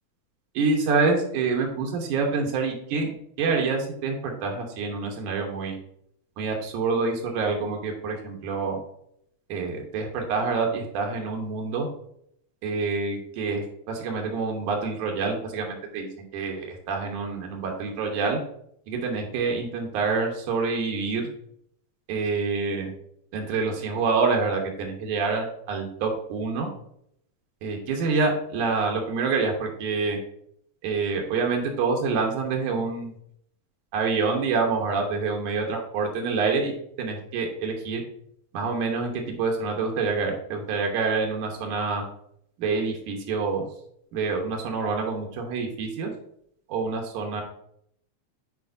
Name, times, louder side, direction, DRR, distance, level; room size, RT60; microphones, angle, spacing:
voice 1, 0.5-5.8 6.4-8.8 9.5-11.9 12.6-18.4 18.9-21.2 22.1-22.9 23.3-26.7 27.6-30.2 30.8-33.1 33.9-38.0 38.5-42.0 42.6-43.7 44.1-46.1 46.7-47.4, right 4 dB, 85° right, 2 dB, 2.5 m, -27 dB
8.2 x 4.4 x 2.6 m, 0.70 s
omnidirectional pair, 3.4 m